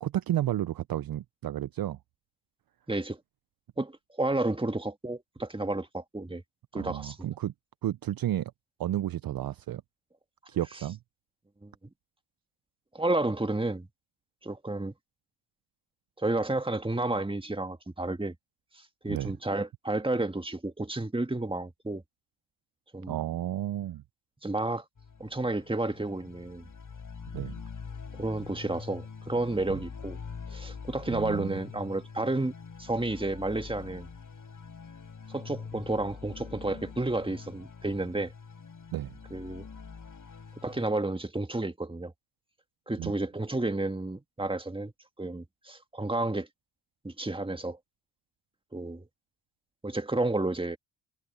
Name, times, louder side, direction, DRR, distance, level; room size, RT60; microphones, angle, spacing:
voice 1, 0.0-2.0 6.7-7.5 7.8-8.5 8.8-9.8 10.5-11.0 19.1-19.3 23.1-24.0 27.3-27.6 29.7-29.8 31.1-31.6 38.9-39.2 43.0-43.1, right 12 dB, 55° right, 0.6 m, -32 dB
voice 2, 2.9-3.2 3.8-6.4 6.7-7.2 11.6-11.7 12.9-13.9 14.4-14.9 16.2-18.3 19.0-22.0 22.9-23.2 24.4-24.9 25.2-26.7 28.2-30.2 30.5-32.5 32.8-34.1 35.3-38.3 39.3-39.7 40.6-42.1 42.9-44.9 45.2-46.5 47.0-47.8 48.7-49.0 49.8-50.8, right 2 dB, 10° right, 1.9 m, -31 dB
sound 1, 25.0-40.9, left 5 dB, 45° left, 4.1 m, -44 dB
supercardioid pair, 60°, 45 cm